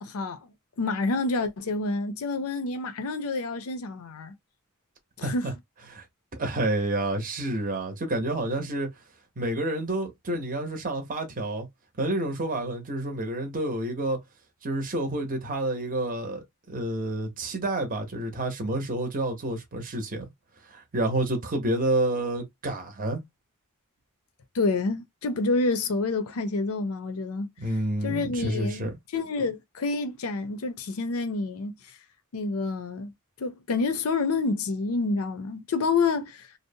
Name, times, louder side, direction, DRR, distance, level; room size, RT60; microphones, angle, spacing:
voice 1, 0.0-4.3 5.2-5.5 24.5-27.5 28.0-32.0 32.3-36.5, left 3 dB, 65° left, 0.5 m, -28 dB
voice 2, 5.2-5.5 5.9-6.0 6.4-8.9 9.4-11.7 12.0-14.2 14.6-20.3 20.7-23.2 27.6-29.0, right 1 dB, 35° right, 0.7 m, -29 dB
2.6 x 2.0 x 2.6 m
head